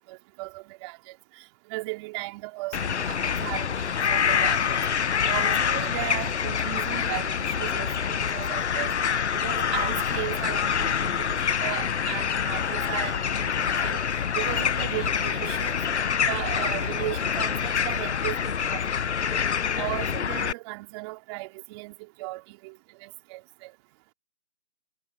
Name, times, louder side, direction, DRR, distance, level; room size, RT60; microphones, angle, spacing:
voice 1, 0.1-1.4 1.7-4.8 5.3-8.9 9.3-14.0 14.3-15.8 16.3-19.3 19.8-22.7 23.0-23.8, right 24 dB, 20° right, 3.5 m, -36 dB
sound 1, 2.7-20.5, left 7 dB, 60° left, 1.1 m, -26 dB
hypercardioid pair, 155°, 39 cm